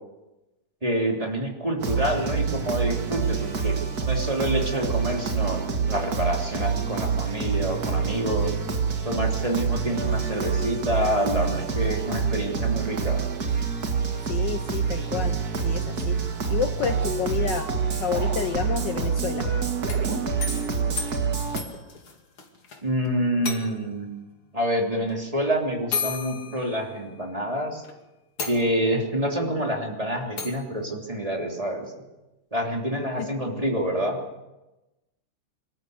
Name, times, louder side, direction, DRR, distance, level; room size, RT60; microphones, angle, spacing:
voice 1, 0.8-3.8 4.1-8.5 9.0-13.2 22.8-24.1 24.5-27.8 28.5-31.9 32.5-34.2, equal, 15° right, 0 dB, 3.3 m, -27 dB
sound 1, 1.8-21.6, right 6 dB, 45° right, 2.3 m, -27 dB
voice 2, 14.3-16.2 16.5-17.7 18.0-19.5 33.2-33.3, left 8 dB, 65° left, 8 dB, 1.4 m, -30 dB
sound 2, 19.8-22.8 23.1-23.2 23.4-24.0 25.1-25.2 25.9-27.3 27.8-27.9 28.4-29.1 30.4-30.7, left 5 dB, 80° left, 3.3 m, -34 dB
25.5 x 13.5 x 8.1 m, 1.0 s
omnidirectional pair, 2.3 m